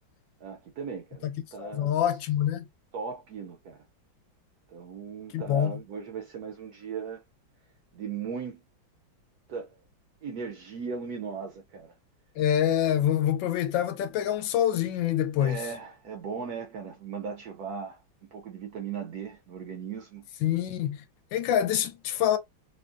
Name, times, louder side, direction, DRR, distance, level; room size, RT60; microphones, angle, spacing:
voice 1, 0.4-1.3 1.5-1.9 2.9-3.8 4.7-7.2 7.9-8.6 9.5-9.7 10.2-11.9 15.4-20.3, right 6 dB, 75° right, 0.9 m, -37 dB
voice 2, 1.6-2.7 5.3-5.8 12.4-15.7 20.4-21.0 21.3-22.4, left 10 dB, 75° left, 1.3 m, -26 dB
3.7 x 2.1 x 2.5 m
omnidirectional pair, 2.1 m